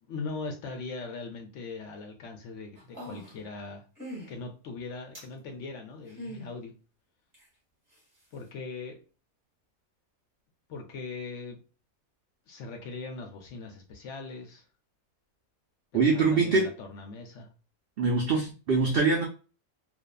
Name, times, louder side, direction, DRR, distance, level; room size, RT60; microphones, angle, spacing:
voice 1, 0.0-3.8 4.3-6.7 8.3-9.0 10.7-11.6 12.5-14.6 15.9-17.5, left 4 dB, 65° left, 0.9 m, -40 dB
sound 1, 2.8-3.5 4.0-4.3 5.1-5.3 6.1-6.5 7.3-7.4, equal, 15° right, 0.9 m, -41 dB
voice 2, 15.9-16.7 18.0-19.3, right 4 dB, 80° right, 0.5 m, -23 dB
2.6 x 2.3 x 2.2 m
omnidirectional pair, 1.5 m